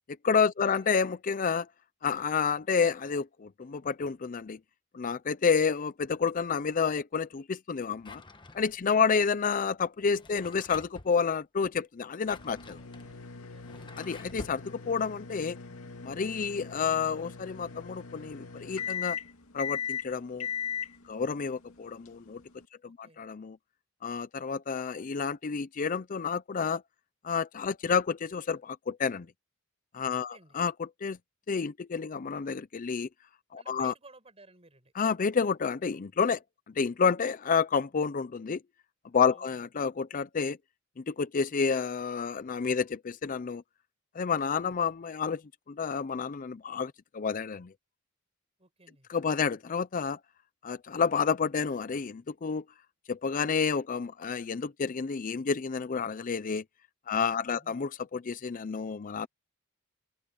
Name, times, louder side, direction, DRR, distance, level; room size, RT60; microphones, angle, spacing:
voice 1, 0.2-1.7 2.0-4.6 4.9-8.2 8.5-12.8 14.0-15.6 16.0-19.2 19.5-20.5 21.1-22.4 22.8-23.6 24.0-26.8 27.2-29.3 29.9-31.2 31.5-33.1 33.5-33.9 35.0-36.4 36.8-38.6 39.1-40.6 41.0-43.6 44.1-45.4 45.7-47.7 49.1-50.2 50.6-52.6 53.1-56.6 57.1-59.3, left 6 dB, 40° left, 0.5 m, -29 dB
Drawer open or close, 8.0-9.0 10.0-11.2 12.0-14.6, left 2 dB, 25° left, 1.2 m, -49 dB
sound 1, 12.3-22.6, left 7 dB, 85° left, 2.4 m, -39 dB
voice 2, 13.5-13.9 22.8-23.2 30.1-30.6 33.6-34.9 39.3-39.7 48.6-49.1 57.2-57.8, right 3 dB, 30° right, 7.9 m, -56 dB
open air
head